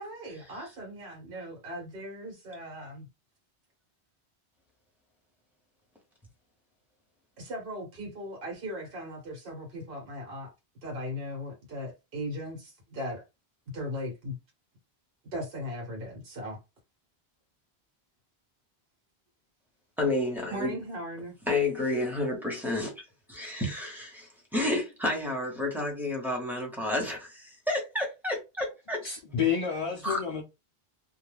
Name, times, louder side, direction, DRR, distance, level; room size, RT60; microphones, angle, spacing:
voice 1, 0.0-3.1 7.4-10.5 10.8-13.2 13.7-14.3 15.3-16.6 20.5-21.3, equal, 60° right, 1.2 m, -38 dB
voice 2, 20.0-20.7 21.5-23.0 23.3-29.0 30.0-30.2, left 2 dB, ahead, 0.8 m, -30 dB
voice 3, 29.0-30.4, left 7 dB, 50° left, 0.4 m, -29 dB
2.3 x 2.3 x 3.2 m
omnidirectional pair, 1.1 m